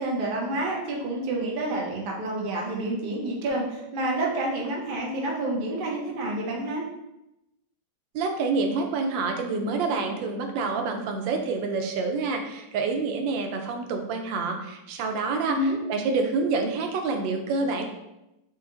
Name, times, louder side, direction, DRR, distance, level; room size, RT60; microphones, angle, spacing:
voice 1, 0.0-6.9 15.4-15.8, right 1 dB, 45° right, -2 dB, 0.6 m, -28 dB
voice 2, 8.1-17.8, right 4 dB, 90° right, 4 dB, 1.3 m, -27 dB
4.5 x 2.3 x 3.7 m, 0.91 s
omnidirectional pair, 2.0 m